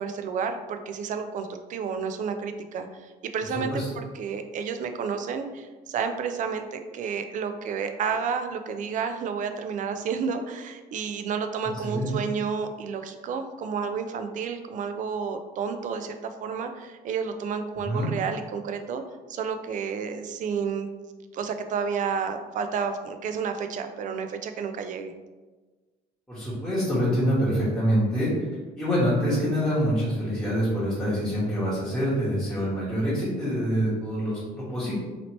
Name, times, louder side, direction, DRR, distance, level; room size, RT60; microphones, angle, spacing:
voice 1, 0.0-19.0 19.3-20.9 21.3-25.1, right 6 dB, 50° right, 7 dB, 0.4 m, -31 dB
voice 2, 17.8-18.1 26.3-28.3 28.8-34.9, equal, 5° left, -11 dB, 1.2 m, -25 dB
2.9 x 2.8 x 3.0 m, 1.3 s
cardioid pair, 110°, 17 cm